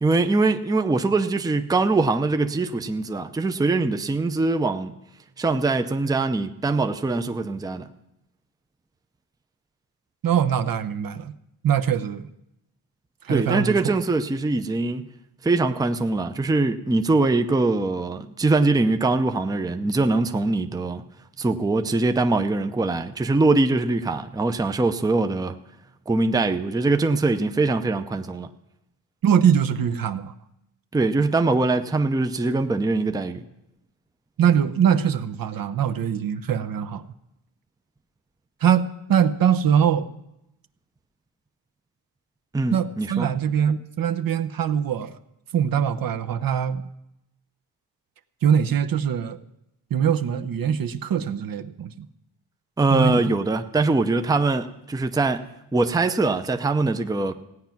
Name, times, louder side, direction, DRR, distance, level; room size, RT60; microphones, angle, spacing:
voice 1, 0.0-4.9 5.4-7.9 13.3-15.1 15.4-21.0 21.4-25.6 26.1-28.5 30.9-33.4 42.5-43.3 52.8-57.3, right 3 dB, 10° right, 8 dB, 0.7 m, -22 dB
voice 2, 10.2-11.3 11.6-12.3 13.2-13.8 29.2-30.3 34.4-37.0 38.6-40.1 42.7-45.2 45.5-46.8 48.4-49.4 49.9-52.1 52.9-53.2, right 8 dB, 50° right, 10 dB, 0.8 m, -22 dB
16.5 x 9.2 x 5.9 m, 0.86 s
cardioid pair, 100°, 44 cm